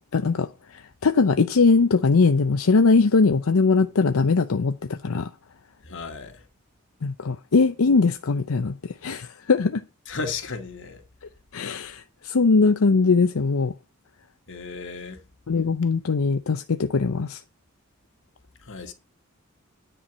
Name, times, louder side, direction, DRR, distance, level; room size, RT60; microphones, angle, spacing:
voice 1, 0.1-5.3 7.0-8.8 9.0-9.8 11.5-13.7 15.5-17.4, left 4 dB, 85° left, 0.6 m, -21 dB
voice 2, 5.8-6.4 10.1-11.0 14.5-15.2 18.6-18.9, left 4 dB, 60° left, 2.1 m, -34 dB
10.0 x 4.6 x 7.3 m
head